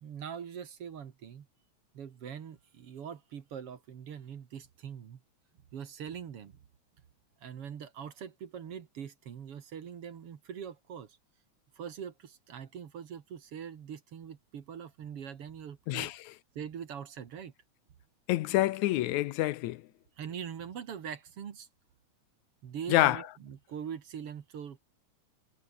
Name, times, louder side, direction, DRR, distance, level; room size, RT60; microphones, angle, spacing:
voice 1, 0.0-1.5 1.9-5.2 5.7-6.6 7.4-11.2 11.8-16.1 16.6-17.5 20.2-21.7 22.6-24.8, right 8 dB, 55° right, 2.4 m, -42 dB
voice 2, 18.3-19.8 22.9-23.2, left 16 dB, 80° left, 2.0 m, -27 dB
omnidirectional pair, 3.4 m